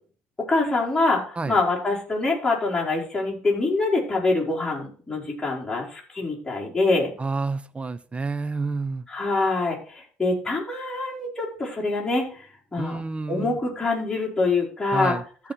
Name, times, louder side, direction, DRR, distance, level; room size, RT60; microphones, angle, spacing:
voice 1, 0.5-7.1 9.1-12.4 12.7-13.0 13.3-15.2, left 3 dB, 15° left, -4 dB, 5.0 m, -25 dB
voice 2, 7.2-9.0 12.8-13.6 14.9-15.2, right 3 dB, 25° right, 13 dB, 0.9 m, -29 dB
14.0 x 5.4 x 4.4 m, 0.40 s
hypercardioid pair, 60°, 5 cm